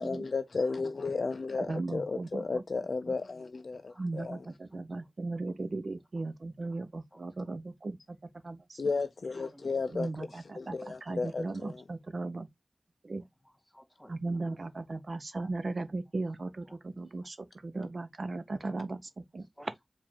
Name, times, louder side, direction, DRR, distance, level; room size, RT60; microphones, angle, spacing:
voice 1, 0.0-4.5 8.8-11.8, left 4 dB, 85° left, 0.3 m, -34 dB
voice 2, 0.6-1.3 2.1-2.2 3.9-4.3 4.7-5.1 6.1-6.2 6.6-6.8 7.1-7.2 9.3-10.4 13.2-14.6 16.7-16.8 17.1-17.3 18.7-18.8 19.4-19.8, equal, 15° left, 2.1 m, -58 dB
voice 3, 1.7-2.6 4.0-8.0 8.4-8.8 9.9-10.8 11.1-12.5 13.0-13.2 14.1-17.4 17.6-19.0 19.3-19.4, right 3 dB, 70° right, 0.6 m, -37 dB
4.7 x 2.5 x 3.5 m
cardioid pair, 40°, 0 cm